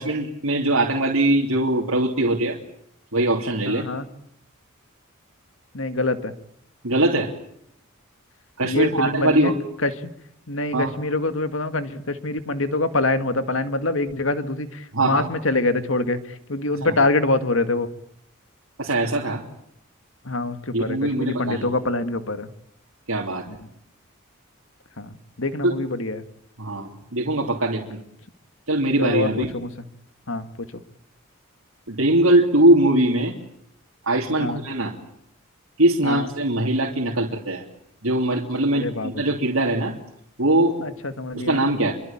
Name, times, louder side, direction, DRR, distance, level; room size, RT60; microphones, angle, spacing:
voice 1, 0.0-2.6 3.1-3.9 6.8-7.3 8.6-9.6 10.7-10.9 14.9-15.3 16.8-16.9 18.8-19.4 20.7-21.7 23.1-23.6 25.6-25.7 26.6-28.0 28.7-29.5 31.9-33.3 34.1-34.9 35.8-37.6 38.0-40.0 40.4-40.8 41.3-41.9, right 1 dB, 80° right, -1 dB, 3.1 m, -21 dB
voice 2, 3.7-4.1 5.7-6.3 8.6-9.5 9.8-9.9 10.5-16.2 16.5-17.9 20.3-22.5 23.5-23.6 25.0-26.2 29.0-29.7 30.3-30.5 34.4-34.6 36.0-36.3 38.7-39.2 40.8-41.6, left 2 dB, 65° left, 10 dB, 2.1 m, -25 dB
26.5 x 24.0 x 8.8 m, 0.73 s
head